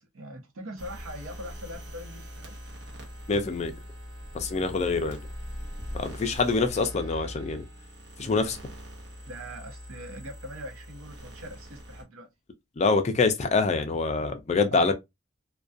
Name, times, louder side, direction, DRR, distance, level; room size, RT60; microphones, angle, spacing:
voice 1, 0.0-2.6 4.5-5.1 6.3-6.5 8.2-8.6 9.3-12.3 14.7-14.9, equal, 85° right, 0.8 m, -42 dB
sound 1, 0.8-12.0, equal, 60° right, 0.8 m, -42 dB
voice 2, 3.3-3.7 4.3-5.2 5.9-7.6 8.2-8.6 12.8-14.9, left 4 dB, 30° left, 0.3 m, -25 dB
2.4 x 2.2 x 2.4 m
head